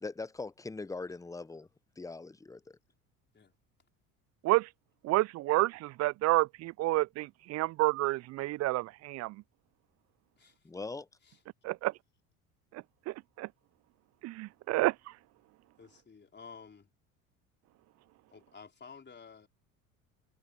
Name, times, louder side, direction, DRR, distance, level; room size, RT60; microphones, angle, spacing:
voice 1, 0.0-1.7 2.0-2.8 10.6-11.1, left 3 dB, 10° left, 0.8 m, -41 dB
voice 2, 5.0-9.4 11.6-11.9 13.1-13.5 14.2-14.9, right 18 dB, 40° right, 0.5 m, -29 dB
voice 3, 15.8-16.9 18.3-19.5, left 5 dB, 25° left, 4.5 m, -52 dB
figure-of-eight pair, 65°, 43 cm